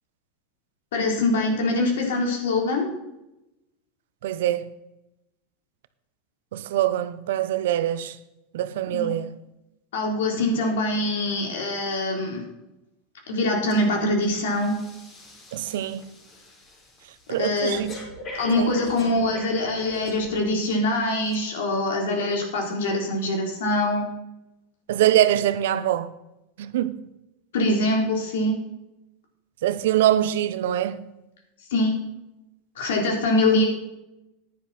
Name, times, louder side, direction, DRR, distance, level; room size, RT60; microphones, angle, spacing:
voice 1, 0.9-2.9 8.9-9.1 9.9-12.4 13.3-14.7 17.3-17.8 18.4-24.0 27.5-28.6 31.7-32.0 32.8-33.7, left 2 dB, 90° left, 3.7 m, -24 dB
voice 2, 4.2-4.7 6.5-8.2 8.5-9.3 15.5-16.1 17.3-17.9 18.6-18.8 24.9-26.1 26.6-27.0 29.6-31.1, right 12 dB, 80° right, 0.8 m, -23 dB
Breathing, 13.7-13.9 14.2-20.7 21.2-21.4, left 1 dB, 30° left, 3.8 m, -42 dB
10.5 x 10.5 x 4.3 m
supercardioid pair, 145°, 0 cm